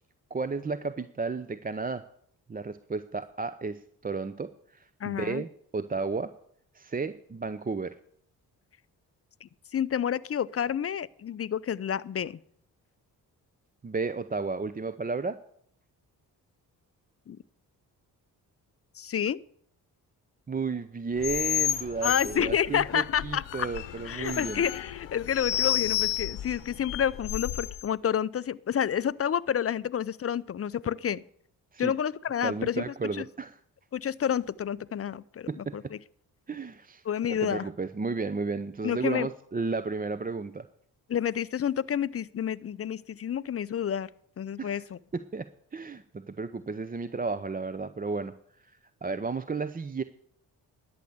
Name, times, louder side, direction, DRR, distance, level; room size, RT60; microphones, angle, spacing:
voice 1, 0.3-2.0 2.5-5.5 5.7-6.3 6.7-7.9 13.8-15.4 20.5-24.6 31.7-31.9 32.4-33.5 35.5-35.9 36.5-37.0 37.3-40.6 44.6-44.8 45.1-48.3 48.7-50.0, right 4 dB, 20° right, 13 dB, 0.6 m, -33 dB
voice 2, 5.0-5.4 9.4-12.4 17.3-17.4 19.0-19.4 22.0-23.7 24.0-31.2 31.8-33.2 33.9-36.0 37.0-37.7 38.8-39.3 41.1-44.1 44.4-45.0, left 9 dB, 30° left, 19 dB, 0.5 m, -29 dB
sound 1, 21.2-27.8, left 13 dB, 70° left, 0.9 m, -31 dB
11.5 x 7.1 x 8.0 m, 0.65 s
hypercardioid pair, 40°, 47 cm